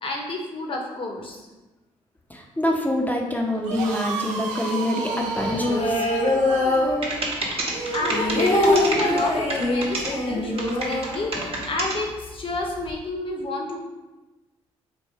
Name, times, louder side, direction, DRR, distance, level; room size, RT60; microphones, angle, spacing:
voice 1, 0.0-1.4 7.9-13.8, left 2 dB, 40° left, 0 dB, 0.9 m, -30 dB
voice 2, 2.3-6.1, left 1 dB, 10° left, 0 dB, 0.7 m, -26 dB
sound 1, 3.5-9.2, right 3 dB, 90° right, 0.5 m, -31 dB
sound 2, 5.3-7.5 7.8-11.7 12.0-12.1 12.4-12.9, left 2 dB, 70° left, 1.0 m, -24 dB
sound 3, 6.7-6.8 7.0-10.1 10.6-12.0, right 2 dB, 45° right, 1.1 m, -28 dB
3.5 x 2.5 x 4.2 m, 1.1 s
supercardioid pair, 60°, 13 cm